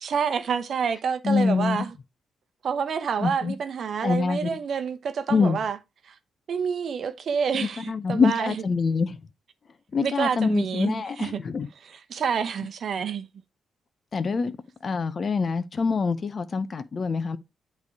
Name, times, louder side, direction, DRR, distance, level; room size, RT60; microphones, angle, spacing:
voice 1, 0.0-1.9 2.6-5.8 6.1-6.2 6.5-8.6 10.0-11.4 11.9-13.3, right 6 dB, 65° right, 0.8 m, -28 dB
voice 2, 1.2-1.8 3.2-3.6 4.0-4.6 5.3-5.6 7.5-9.2 9.9-11.7 14.1-14.5 14.8-17.4, left 5 dB, 50° left, 0.7 m, -25 dB
8.3 x 3.4 x 4.7 m
supercardioid pair, 55°, 0 cm